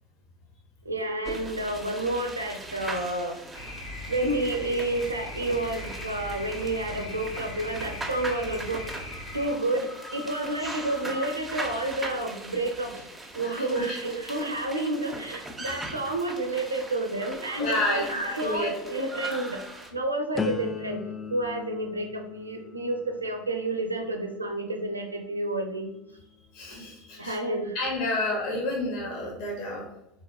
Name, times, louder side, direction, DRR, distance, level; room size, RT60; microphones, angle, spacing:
voice 1, 0.8-3.4 4.1-8.9 9.3-13.1 13.3-19.6 19.9-21.0 21.3-25.9 27.2-27.8, right 2 dB, 90° right, 4 dB, 0.5 m, -30 dB
sound 1, 1.2-19.9, right 1 dB, 10° right, 0.7 m, -40 dB
sound 2, 3.5-9.5, left 1 dB, 80° left, 0.9 m, -39 dB
voice 2, 13.4-14.0 17.6-18.7 26.5-27.4 27.7-29.9, left 2 dB, 55° left, -1 dB, 0.9 m, -30 dB
sound 3, 20.3-26.2 26.7-27.2, left 6 dB, 20° left, 0.4 m, -39 dB
3.9 x 2.8 x 2.6 m, 0.82 s
figure-of-eight pair, 75°, 0 cm